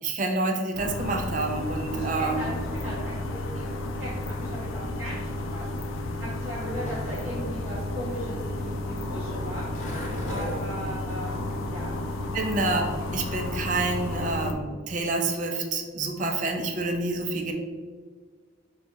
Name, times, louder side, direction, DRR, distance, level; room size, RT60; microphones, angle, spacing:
voice 1, 0.0-2.5 12.3-12.8 13.1-17.5, right 2 dB, 40° right, 3 dB, 0.5 m, -28 dB
sound 1, 0.7-14.5, left 1 dB, 90° left, 0.5 m, -32 dB
voice 2, 1.9-4.1 4.4-5.7 6.2-9.7 10.3-12.0, equal, 15° right, -10 dB, 0.9 m, -38 dB
Skateboard, 6.5-13.5, left 1 dB, 40° left, 0.8 m, -41 dB
4.3 x 2.3 x 4.5 m, 1.5 s
head